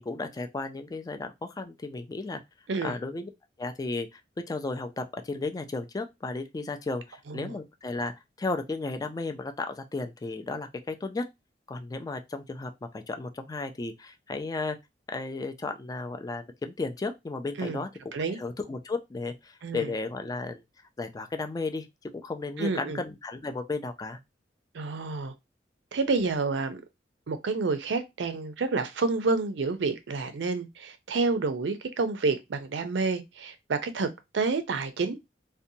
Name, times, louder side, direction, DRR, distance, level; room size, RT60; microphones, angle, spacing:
voice 1, 0.0-2.4 2.8-3.3 3.6-4.2 4.5-11.2 11.7-14.8 15.1-17.9 18.3-20.6 21.0-24.2, left 3 dB, 20° left, 0.3 m, -34 dB
voice 2, 22.6-23.0 24.7-25.3 25.9-26.8 27.3-34.1 34.3-35.2, right 4 dB, 85° right, 0.5 m, -29 dB
2.7 x 2.1 x 2.6 m
head